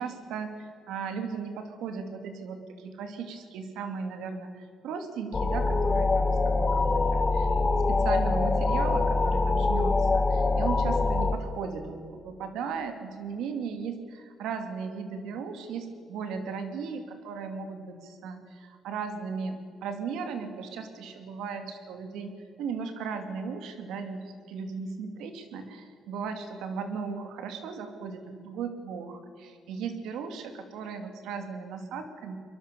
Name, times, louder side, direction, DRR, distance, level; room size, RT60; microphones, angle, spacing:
voice 1, 0.0-7.5 7.9-32.4, right 5 dB, 90° right, 7 dB, 2.7 m, -36 dB
sound 1, 5.3-11.4, left 3 dB, 30° left, 2.0 m, -24 dB
23.5 x 22.0 x 7.0 m, 2.2 s
cardioid pair, 90°, 0 cm